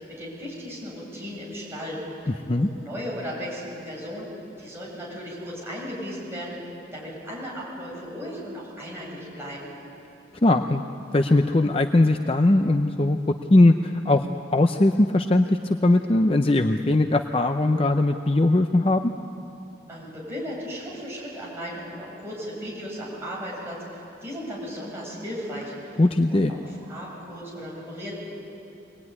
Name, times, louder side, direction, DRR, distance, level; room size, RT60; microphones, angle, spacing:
voice 1, 0.2-2.0 2.6-4.3 4.6-6.6 6.9-9.7 19.9-26.0 26.3-26.6 26.9-28.1, equal, 15° right, -5 dB, 7.7 m, -36 dB
voice 2, 10.4-10.8 11.1-13.2 13.5-19.0 26.0-26.5, left 2 dB, 30° left, 5 dB, 0.6 m, -20 dB
25.0 x 19.0 x 9.7 m, 2.7 s
head